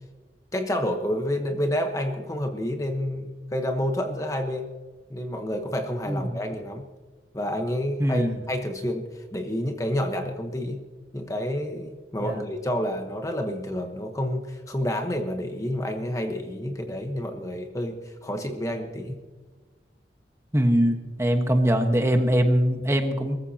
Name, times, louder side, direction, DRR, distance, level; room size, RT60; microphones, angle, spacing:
voice 1, 0.5-4.7 5.1-6.9 7.3-10.8 11.1-19.2, left 1 dB, 20° left, 4 dB, 1.1 m, -29 dB
voice 2, 6.1-6.4 8.0-8.3 12.2-12.4 20.5-23.4, equal, 15° right, 5 dB, 1.3 m, -22 dB
23.0 x 14.5 x 2.9 m, 1.4 s
head